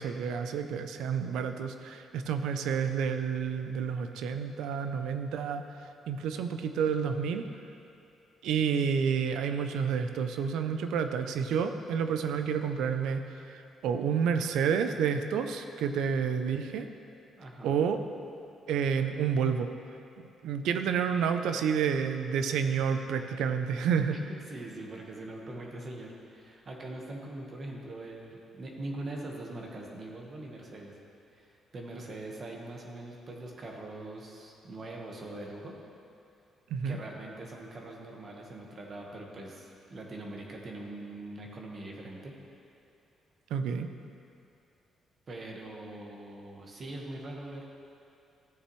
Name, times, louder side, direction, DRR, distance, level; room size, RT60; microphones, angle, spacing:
voice 1, 0.0-5.6 6.1-7.5 8.4-13.2 13.5-16.9 17.6-18.0 18.7-19.7 20.4-24.2 36.7-37.0 43.5-43.9, right 7 dB, 85° right, 8 dB, 0.5 m, -29 dB
voice 2, 17.4-17.8 24.1-24.2 24.5-30.9 31.3-35.7 36.8-42.3 45.3-47.6, right 2 dB, 45° right, -1 dB, 1.3 m, -42 dB
14.0 x 6.8 x 3.1 m, 2.7 s
cardioid pair, 90°, 0 cm